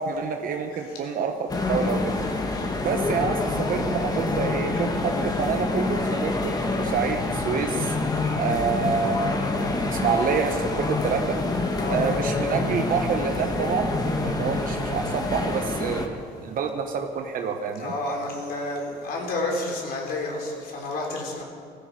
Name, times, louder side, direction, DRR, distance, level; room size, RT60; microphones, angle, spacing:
voice 1, 0.0-2.1 2.8-7.9 8.3-9.4 9.9-11.4 11.9-13.9 14.2-17.9, right 5 dB, 55° right, 5 dB, 1.1 m, -27 dB
sound 1, 1.5-16.1, left 2 dB, 25° left, 1.5 m, -27 dB
voice 2, 11.8-12.3 17.8-21.4, left 2 dB, 65° left, 0 dB, 3.8 m, -30 dB
17.0 x 14.5 x 4.8 m, 2.3 s
cardioid pair, 110°, 17 cm